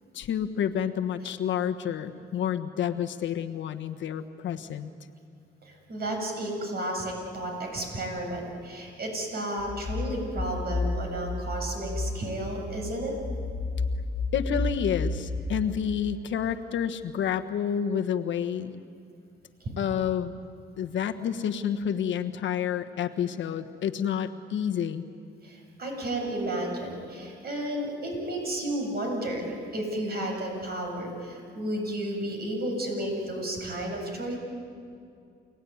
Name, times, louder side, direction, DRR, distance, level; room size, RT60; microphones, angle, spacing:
voice 1, 0.1-4.9 14.3-18.8 19.8-20.4 20.8-25.0, left 8 dB, 70° left, 7 dB, 1.4 m, -29 dB
voice 2, 5.6-13.1 19.6-19.7 25.4-34.4, right 1 dB, 50° right, 1 dB, 7.9 m, -32 dB
sound 1, 9.6-15.7, left 2 dB, 40° left, 1.3 m, -32 dB
28.5 x 18.5 x 9.5 m, 2.4 s
cardioid pair, 90°, 20 cm